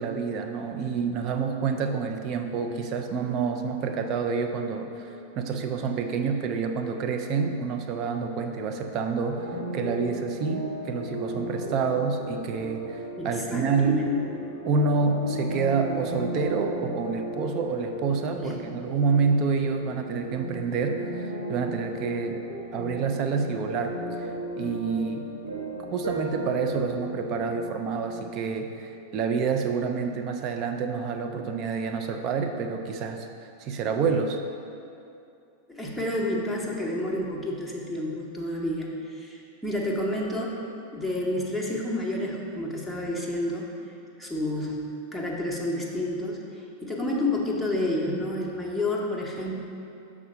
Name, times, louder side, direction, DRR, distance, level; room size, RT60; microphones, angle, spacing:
voice 1, 0.0-14.0 14.7-22.4 22.7-24.3 24.6-25.3 25.9-33.3 33.6-34.4, right 5 dB, 40° right, 5 dB, 0.5 m, -28 dB
sound 1, 9.3-28.3, right 1 dB, 85° right, 1.5 m, -36 dB
voice 2, 13.2-14.2 18.3-18.6 35.7-40.6 40.9-43.7 44.2-44.8 45.1-49.6, left 1 dB, ahead, -3 dB, 0.9 m, -30 dB
6.6 x 3.7 x 5.5 m, 2.6 s
figure-of-eight pair, 90°, 0 cm